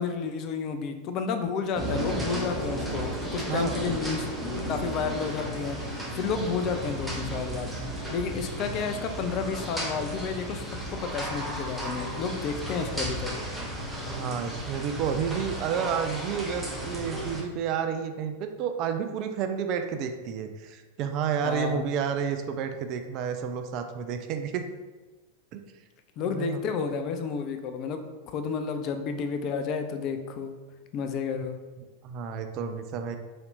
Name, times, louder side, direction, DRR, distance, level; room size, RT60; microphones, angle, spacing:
voice 1, 0.0-4.3 4.7-5.8 6.1-7.7 8.1-13.3 21.4-21.9 26.2-28.0 28.3-30.5 30.9-31.6, left 5 dB, 35° left, 7 dB, 0.4 m, -31 dB
sound 1, 1.8-17.4, equal, 5° right, 0.8 m, -34 dB
voice 2, 3.5-3.9 14.1-24.6 25.5-25.6 26.2-26.7 32.0-33.2, right 7 dB, 40° right, 7 dB, 0.3 m, -30 dB
4.1 x 3.2 x 2.7 m, 1.2 s
figure-of-eight pair, 90°, 0 cm